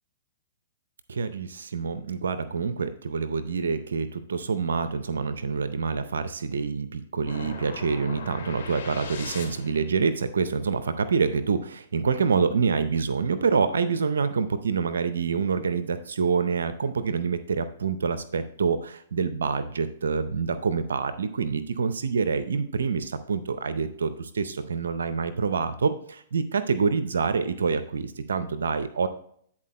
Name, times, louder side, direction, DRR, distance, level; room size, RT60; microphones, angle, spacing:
voice 1, 1.1-29.1, right 5 dB, 85° right, 12 dB, 0.5 m, -26 dB
sound 1, 7.3-9.9, left 5 dB, 65° left, 2.3 m, -39 dB
9.8 x 4.3 x 4.1 m, 0.63 s
hypercardioid pair, 130°, 0 cm